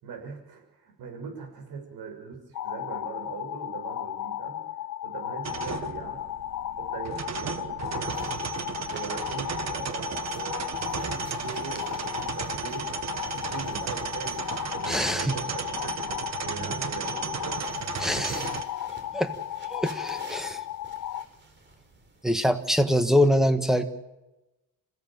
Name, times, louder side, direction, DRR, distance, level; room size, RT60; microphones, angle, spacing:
voice 1, 0.0-4.6 5.0-6.2 6.8-10.7 10.9-12.9 13.2-17.9, right 5 dB, 80° right, 2 dB, 6.7 m, -41 dB
sound 1, 2.5-21.2, left 12 dB, 55° left, 0.7 m, -35 dB
sound 2, 5.4-18.6, right 7 dB, 50° right, 1.5 m, -35 dB
sound 3, 8.1-22.6, right 3 dB, 30° right, 4.3 m, -49 dB
voice 2, 14.9-15.4 18.0-18.5 19.1-19.3 19.7-20.6 22.2-23.8, equal, ahead, 8 dB, 1.4 m, -24 dB
27.0 x 16.5 x 7.5 m, 1.0 s
cardioid pair, 145°, 36 cm